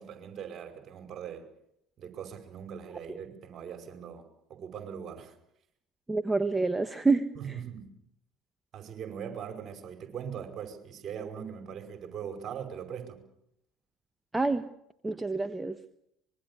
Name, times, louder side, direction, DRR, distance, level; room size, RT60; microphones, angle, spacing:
voice 1, 0.0-1.5 2.0-4.2 4.5-5.3 7.3-7.9 8.7-13.2, right 8 dB, 45° right, 6 dB, 5.3 m, -40 dB
voice 2, 6.1-7.3 14.3-14.6 15.0-15.8, right 3 dB, 15° right, 11 dB, 1.3 m, -27 dB
25.0 x 22.5 x 7.1 m, 0.78 s
figure-of-eight pair, 60°, 0 cm